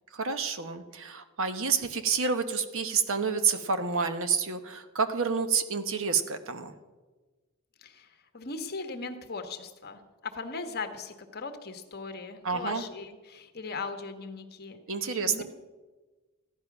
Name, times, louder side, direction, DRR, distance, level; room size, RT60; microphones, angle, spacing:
voice 1, 0.1-6.8 12.4-12.8 14.9-15.4, right 5 dB, 65° right, 9 dB, 1.0 m, -29 dB
voice 2, 7.8-15.4, left 4 dB, 45° left, 7 dB, 1.3 m, -39 dB
14.5 x 10.5 x 6.0 m, 1.3 s
head